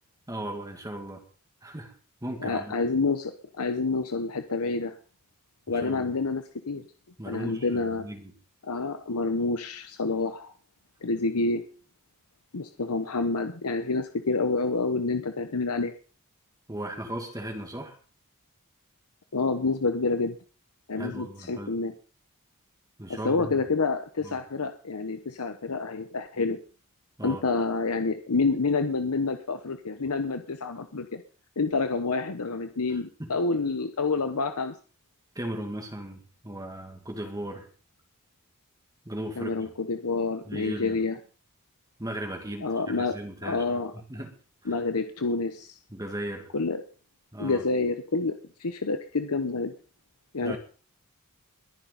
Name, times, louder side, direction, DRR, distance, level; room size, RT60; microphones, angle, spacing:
voice 1, 0.3-1.2 1.6-1.9 2.2-2.7 5.7-6.1 7.2-8.3 16.7-18.0 21.0-21.7 23.0-23.6 24.2-24.4 27.2-27.4 32.9-33.3 35.4-37.7 39.1-39.7 40.5-41.0 42.0-43.8 44.1-44.3 44.6-44.8 45.9-46.5 47.3-47.6 50.4-50.6, right 1 dB, 15° right, 3 dB, 2.2 m, -37 dB
voice 2, 2.4-4.9 5.7-6.8 7.2-8.1 8.6-10.5 11.0-11.6 12.5-15.9 19.3-20.3 20.9-21.9 23.1-26.6 27.2-31.2 31.6-34.7 39.4-41.2 42.6-43.9 44.7-45.8 46.5-46.8 47.4-49.7 50.3-50.6, left 3 dB, 85° left, 8 dB, 0.9 m, -28 dB
22.0 x 10.0 x 4.1 m, 0.39 s
head